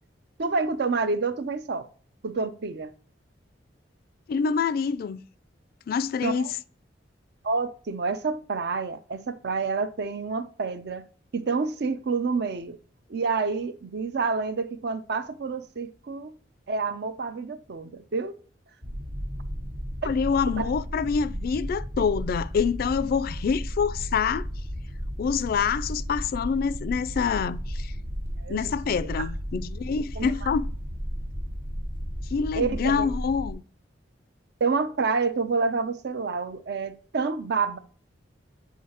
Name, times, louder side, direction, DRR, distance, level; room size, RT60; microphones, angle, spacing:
voice 1, 0.4-1.9 2.2-2.9 6.2-6.5 7.4-11.0 11.3-12.8 13.1-16.4 16.7-18.3 20.0-20.1 20.6-20.7 28.4-28.7 29.1-29.3 30.2-30.5 32.5-33.1 34.6-37.8, right 4 dB, 65° right, 0.5 m, -28 dB
voice 2, 4.3-5.2 5.9-6.5 20.0-24.4 25.2-27.9 28.5-30.6 32.3-33.6, left 6 dB, 55° left, 0.3 m, -26 dB
sound 1, 18.8-33.5, equal, 85° right, 1.9 m, -34 dB
8.2 x 4.7 x 2.9 m
head